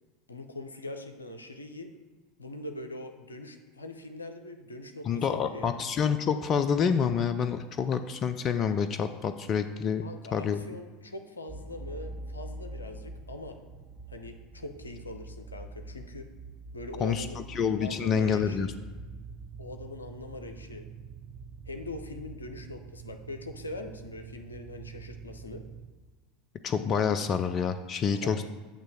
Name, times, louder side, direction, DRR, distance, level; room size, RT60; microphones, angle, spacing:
voice 1, 0.3-1.9 2.4-5.7 10.0-13.6 14.1-16.3 16.7-17.5 17.8-18.7 19.6-20.9 21.7-25.6 28.2-28.4, left 2 dB, 80° left, 6 dB, 0.6 m, -42 dB
voice 2, 5.0-10.0 10.3-10.6 17.0-18.7 26.6-28.4, left 6 dB, 35° left, 10 dB, 0.4 m, -27 dB
sound 1, 11.5-25.9, right 3 dB, 20° right, 0.7 m, -45 dB
8.8 x 3.0 x 6.3 m, 1.3 s
figure-of-eight pair, 75°, 0 cm